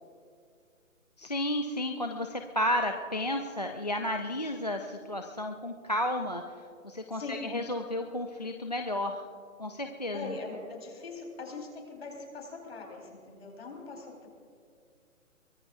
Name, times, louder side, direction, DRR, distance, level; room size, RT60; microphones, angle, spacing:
voice 1, 1.2-6.4 6.8-9.3 9.6-10.4, left 1 dB, 35° left, 4 dB, 0.4 m, -32 dB
voice 2, 7.1-7.5 10.1-14.3, left 3 dB, 50° left, 0 dB, 4.2 m, -41 dB
23.0 x 21.0 x 2.6 m, 2.3 s
hypercardioid pair, 175°, 39 cm